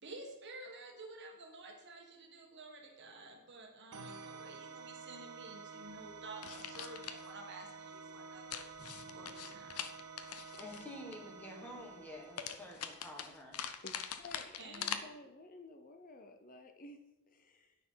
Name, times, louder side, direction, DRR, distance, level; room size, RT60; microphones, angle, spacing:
voice 1, 0.0-8.7 9.1-9.9 14.6-15.0, right 2 dB, 50° right, 2 dB, 1.6 m, -51 dB
sound 1, 3.9-13.4, right 4 dB, 90° right, 0.9 m, -51 dB
sound 2, 5.8-7.5 8.8-10.3 10.6-10.7, equal, 55° left, 3.1 m, -65 dB
sound 3, 6.4-7.3 8.5-11.2 12.4-15.0, left 8 dB, 80° left, 0.7 m, -43 dB
voice 2, 10.6-13.6, left 1 dB, 5° left, 0 dB, 1.6 m, -49 dB
voice 3, 13.8-17.8, left 2 dB, 40° left, 7 dB, 0.7 m, -53 dB
9.4 x 5.8 x 5.6 m, 0.87 s
head